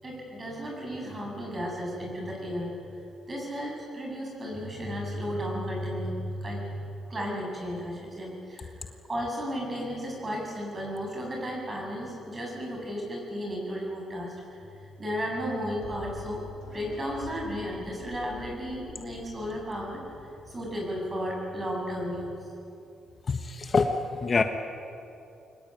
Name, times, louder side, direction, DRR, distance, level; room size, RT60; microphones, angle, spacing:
voice 1, 0.0-2.7 3.3-8.7 9.1-22.4, equal, 25° right, -1 dB, 7.8 m, -34 dB
sound 1, 15.8-21.8, left 7 dB, 70° left, 3.4 m, -47 dB
voice 2, 23.3-24.4, left 4 dB, 35° left, 6 dB, 1.3 m, -25 dB
23.5 x 20.5 x 9.3 m, 2.7 s
cardioid pair, 100°, 0 cm